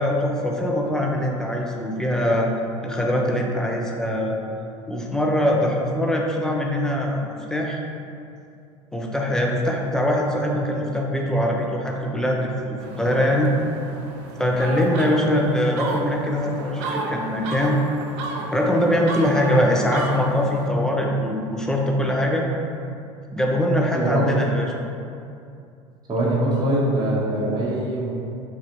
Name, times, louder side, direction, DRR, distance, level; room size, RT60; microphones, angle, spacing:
voice 1, 0.0-2.5 2.8-4.4 4.9-7.8 8.9-13.5 14.4-17.8 18.5-22.5 23.3-24.7, equal, 5° left, -1 dB, 0.4 m, -22 dB
sound 1, 12.8-20.7, right 2 dB, 65° right, 0.4 m, -33 dB
voice 2, 23.9-24.4 26.1-28.1, right 1 dB, 25° right, -6 dB, 0.9 m, -23 dB
3.2 x 2.4 x 3.0 m, 2.5 s
hypercardioid pair, 75°, 16 cm